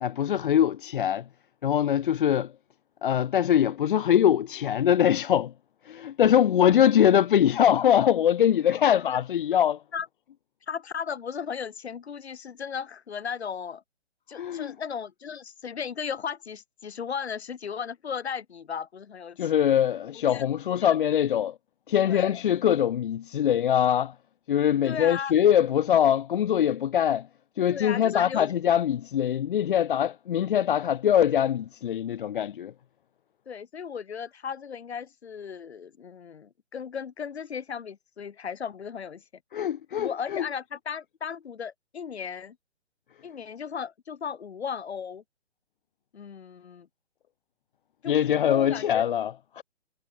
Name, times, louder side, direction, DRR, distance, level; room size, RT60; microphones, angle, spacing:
voice 1, 0.0-1.2 1.6-2.5 3.0-5.5 5.9-9.8 14.3-14.7 19.4-21.5 21.9-24.1 24.5-27.3 27.6-32.7 39.5-40.4 48.1-49.6, left 10 dB, 50° left, 0.5 m, -23 dB
voice 2, 8.9-9.2 9.9-10.1 10.7-13.8 14.3-19.6 20.1-21.0 22.0-22.4 24.8-25.3 27.7-28.5 33.5-39.2 39.9-42.6 43.2-45.2 46.1-46.9 48.0-49.1, left 7 dB, 65° left, 7.7 m, -36 dB
hypercardioid pair, 145°, 35 cm